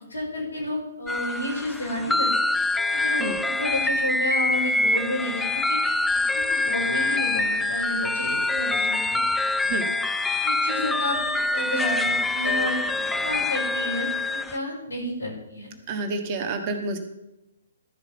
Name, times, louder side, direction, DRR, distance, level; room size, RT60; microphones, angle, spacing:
voice 1, 0.1-2.5 2.9-6.0 6.3-9.2 10.4-11.2 11.5-12.8 13.2-15.7, left 1 dB, 85° left, -1 dB, 4.9 m, -31 dB
sound 1, 1.1-14.6, left 2 dB, 5° left, 0.4 m, -25 dB
voice 2, 15.9-17.0, right 3 dB, 35° right, 4 dB, 1.6 m, -29 dB
13.0 x 5.1 x 6.9 m, 0.92 s
figure-of-eight pair, 130°, 0 cm